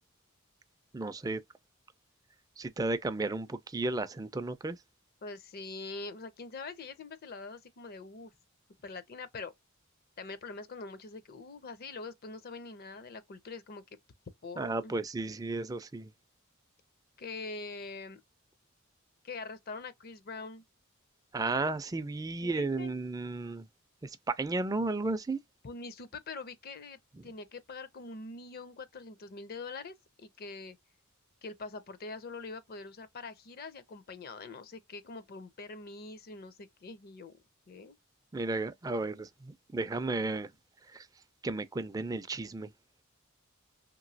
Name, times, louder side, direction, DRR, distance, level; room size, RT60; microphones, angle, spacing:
voice 1, 0.9-1.4 2.6-4.8 14.6-16.1 21.3-23.7 24.0-25.4 38.3-40.5 40.9-41.1 41.4-42.7, right 2 dB, 15° right, 0.3 m, -33 dB
voice 2, 5.2-8.3 8.8-9.5 10.2-13.8 14.4-15.0 17.2-18.2 19.2-20.6 22.4-22.9 25.6-30.8 31.4-37.3 37.7-38.0, left 3 dB, 45° left, 0.5 m, -44 dB
3.0 x 2.6 x 2.6 m
head